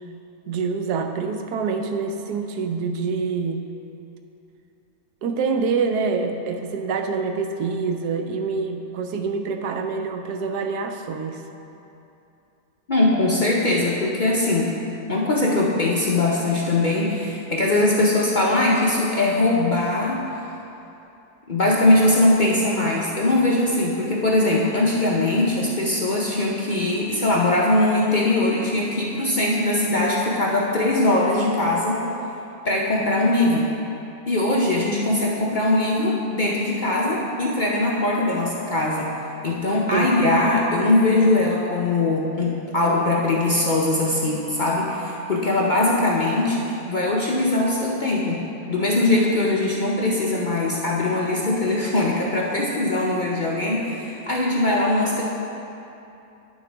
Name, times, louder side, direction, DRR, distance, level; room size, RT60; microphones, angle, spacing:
voice 1, 0.5-3.6 5.2-11.4 39.9-40.1, right 4 dB, 90° right, 5 dB, 1.2 m, -26 dB
voice 2, 12.9-14.7 15.1-20.2 21.5-32.0 32.6-33.7 34.3-39.1 39.4-48.4 48.7-55.2, left 2 dB, 45° left, -4 dB, 0.6 m, -21 dB
9.8 x 6.4 x 3.4 m, 2.8 s
omnidirectional pair, 1.6 m